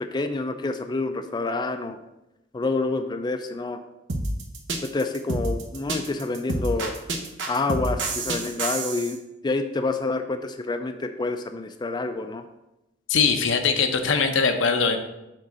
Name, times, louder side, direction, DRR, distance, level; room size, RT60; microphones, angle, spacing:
voice 1, 0.0-2.0 2.5-3.8 4.8-6.9 7.5-12.4, left 3 dB, 25° left, 7 dB, 0.4 m, -28 dB
sound 1, 4.1-9.1, right 2 dB, 75° right, 1.1 m, -28 dB
voice 2, 13.1-15.0, left 5 dB, 90° left, 6 dB, 0.8 m, -21 dB
6.5 x 3.7 x 6.2 m, 0.92 s
head